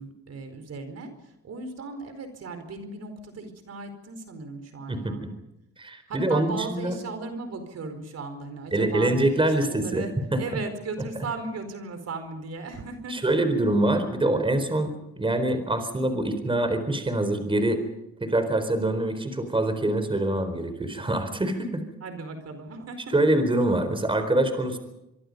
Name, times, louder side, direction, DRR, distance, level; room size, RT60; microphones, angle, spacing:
voice 1, 0.0-5.3 6.1-9.1 9.6-10.1 10.4-13.2 22.0-23.1, right 3 dB, 55° right, 8 dB, 4.6 m, -37 dB
voice 2, 5.8-6.9 8.7-10.1 10.3-10.4 13.1-14.9 15.2-17.8 18.2-21.8 23.1-24.8, right 1 dB, 15° right, 9 dB, 4.2 m, -24 dB
24.5 x 24.5 x 5.4 m, 0.88 s
cardioid pair, 90°, 30 cm